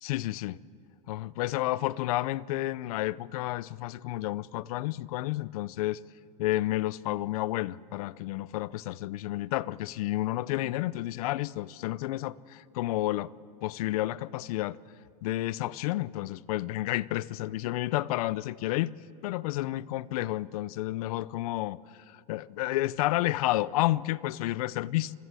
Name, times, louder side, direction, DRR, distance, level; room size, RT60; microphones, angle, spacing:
voice 1, 0.0-0.6 1.1-6.0 6.4-13.3 13.6-14.8 15.2-21.8 22.1-25.1, left 16 dB, 75° left, 0.6 m, -31 dB
26.0 x 22.0 x 7.6 m
supercardioid pair, 120°, 19 cm